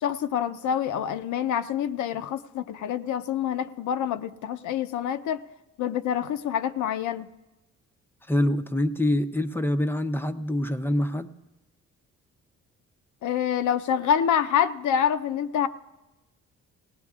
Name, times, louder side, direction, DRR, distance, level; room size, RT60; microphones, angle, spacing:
voice 1, 0.0-5.4 5.8-7.3 13.2-15.7, left 9 dB, 75° left, 10 dB, 0.6 m, -26 dB
voice 2, 8.3-11.3, left 1 dB, 5° left, 9 dB, 0.6 m, -25 dB
18.5 x 18.0 x 2.4 m, 1.0 s
cardioid pair, 90°, 30 cm